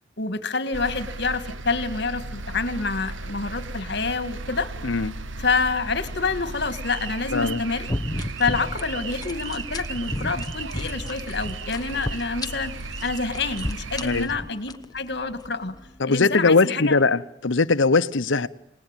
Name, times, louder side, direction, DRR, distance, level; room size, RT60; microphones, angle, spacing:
voice 1, 0.2-4.7 5.4-7.9 8.4-12.7 13.0-15.7 16.0-17.0, left 4 dB, 60° left, 2.0 m, -27 dB
sound 1, 0.7-14.3, right 3 dB, 85° right, 1.1 m, -35 dB
voice 2, 4.8-5.2 7.3-7.6 14.0-14.3 16.0-18.5, left 3 dB, 80° left, 0.9 m, -20 dB
sound 2, 7.9-16.0, left 1 dB, 20° left, 0.9 m, -34 dB
28.5 x 19.5 x 9.1 m
head